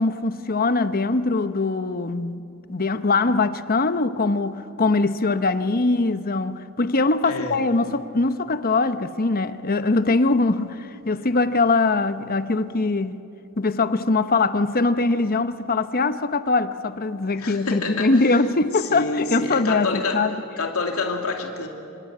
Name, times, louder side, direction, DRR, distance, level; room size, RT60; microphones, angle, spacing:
voice 1, 0.0-2.4 2.7-13.2 13.6-20.3, left 3 dB, 45° left, 0.9 m, -22 dB
voice 2, 7.2-7.6 17.4-18.3 18.8-20.2 20.6-21.7, left 3 dB, 85° left, 2.6 m, -27 dB
27.0 x 25.5 x 8.7 m
head